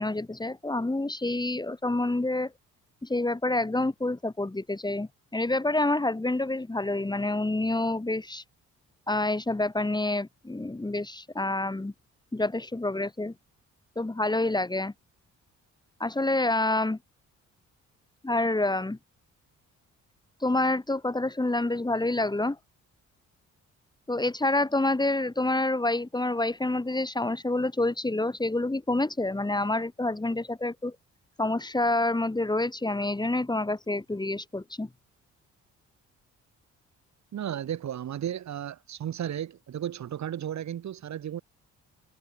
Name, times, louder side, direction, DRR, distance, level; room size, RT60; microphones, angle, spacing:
voice 1, 0.0-2.5 3.0-8.4 9.1-11.9 12.3-13.3 14.0-14.9 16.0-17.0 18.2-19.0 20.4-22.6 24.1-31.0 31.4-34.9, left 2 dB, 15° left, 4.0 m, -27 dB
voice 2, 37.3-41.4, right 10 dB, 65° right, 5.4 m, -34 dB
cardioid pair, 90°, 30 cm